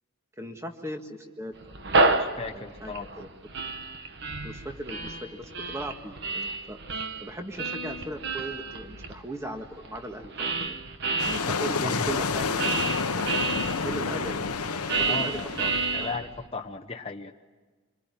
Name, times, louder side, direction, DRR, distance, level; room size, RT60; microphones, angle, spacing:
voice 1, 0.4-2.2 2.5-3.3 4.4-10.8 11.2-12.7 13.8-15.7 16.0-16.1, right 1 dB, 15° right, 4 dB, 1.7 m, -38 dB
sound 1, 1.6-11.4 12.0-16.5, right 3 dB, 50° right, 1.4 m, -30 dB
voice 2, 2.1-3.2 11.5-12.1 15.0-15.5 15.9-17.3, left 3 dB, 25° left, 2 dB, 0.9 m, -36 dB
sound 2, 11.2-16.1, left 4 dB, 85° left, 1.1 m, -29 dB
26.0 x 23.0 x 9.8 m, 1.3 s
head